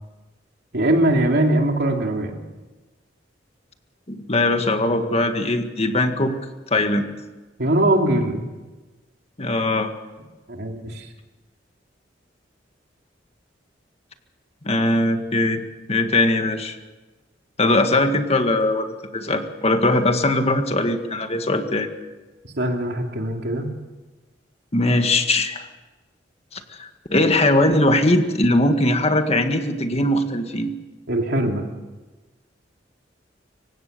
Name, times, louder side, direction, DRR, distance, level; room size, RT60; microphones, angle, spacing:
voice 1, 0.7-2.4 7.6-8.5 10.5-11.1 22.6-23.7 31.1-31.6, right 1 dB, 65° right, 3 dB, 3.0 m, -21 dB
voice 2, 4.1-6.3 6.7-7.1 9.4-9.9 14.6-15.6 15.9-16.7 17.6-18.9 19.1-21.9 24.7-25.7 26.5-30.7, left 2 dB, 35° left, 6 dB, 1.8 m, -20 dB
26.0 x 16.5 x 6.9 m, 1.2 s
head